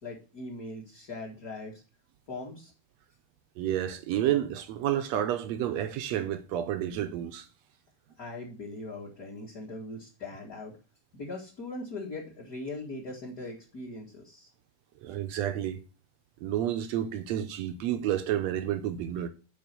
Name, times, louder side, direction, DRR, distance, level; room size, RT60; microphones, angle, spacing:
voice 1, 0.0-1.8 2.3-2.7 8.2-10.8 11.1-14.5, left 2 dB, 35° left, 1.7 m, -40 dB
voice 2, 3.6-7.5 15.0-15.8 16.4-19.3, right 11 dB, 75° right, 1.7 m, -30 dB
7.6 x 5.0 x 6.7 m
omnidirectional pair, 3.6 m